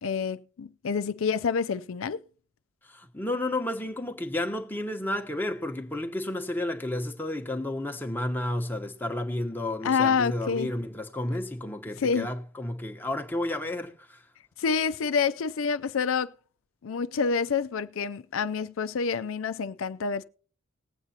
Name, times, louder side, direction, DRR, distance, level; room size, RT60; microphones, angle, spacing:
voice 1, 0.0-2.2 9.8-10.7 12.0-12.3 14.6-16.3 16.8-20.2, left 5 dB, 85° left, 0.4 m, -27 dB
voice 2, 2.8-14.2, left 1 dB, 10° left, 1.0 m, -32 dB
19.5 x 8.1 x 2.8 m
head